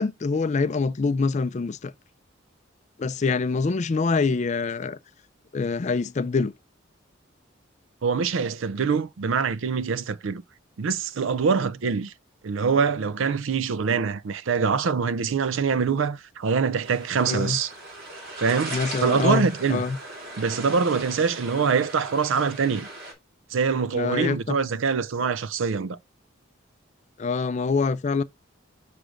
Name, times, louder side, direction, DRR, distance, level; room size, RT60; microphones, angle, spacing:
voice 1, 0.0-1.9 3.0-5.0 5.5-6.5 17.3-17.6 18.7-20.0 23.9-24.6 27.2-28.2, left 4 dB, 35° left, 0.4 m, -25 dB
voice 2, 8.0-10.4 10.8-12.1 12.4-17.7 18.4-19.8 20.4-22.9 23.5-26.0, right 5 dB, 75° right, 0.5 m, -24 dB
sound 1, 16.8-23.1, right 2 dB, 50° right, 2.7 m, -38 dB
6.3 x 3.3 x 5.0 m
head